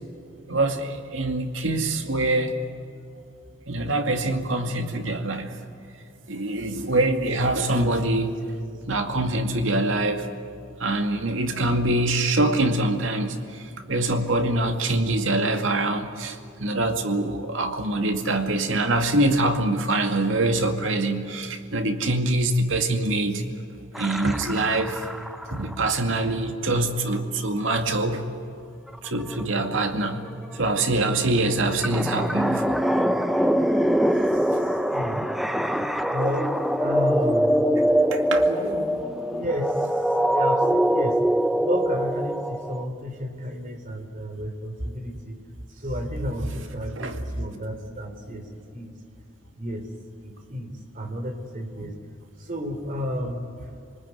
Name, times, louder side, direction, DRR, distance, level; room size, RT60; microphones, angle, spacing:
voice 1, 0.5-2.6 3.7-5.5 6.3-8.3 8.7-10.3 10.8-23.4 24.0-25.1 25.5-28.3 29.0-30.2 30.5-32.8 38.1-38.5 47.0-47.2 51.8-51.9, right 2 dB, 80° right, 5 dB, 2.3 m, -24 dB
sound 1, 24.0-25.9 28.9-29.0 29.2-42.9, equal, ahead, 0.8 m, -24 dB
voice 2, 34.1-35.2 35.8-37.6 38.5-39.9 40.3-41.2 41.6-45.4 45.8-48.5 48.7-48.9 49.6-49.9 50.2-52.0 52.4-53.5, equal, 40° right, 6 dB, 3.4 m, -32 dB
28.5 x 20.0 x 9.5 m, 2.5 s
head